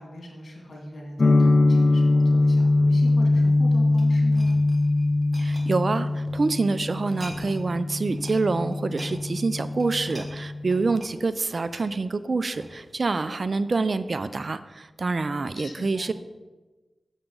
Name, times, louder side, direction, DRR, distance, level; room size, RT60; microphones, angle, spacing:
voice 1, 0.0-4.5 15.5-16.1, left 1 dB, 65° left, -1 dB, 2.0 m, -40 dB
sound 1, 1.2-11.0, left 2 dB, 50° left, 0.4 m, -22 dB
sound 2, 3.3-6.5 6.9-7.6 7.9-8.4 8.7-13.0 13.6-13.7, right 1 dB, 35° right, 1.6 m, -45 dB
voice 2, 5.4-16.1, right 3 dB, 60° right, 14 dB, 0.4 m, -26 dB
7.0 x 6.7 x 3.8 m, 1.2 s
cardioid pair, 40°, 0 cm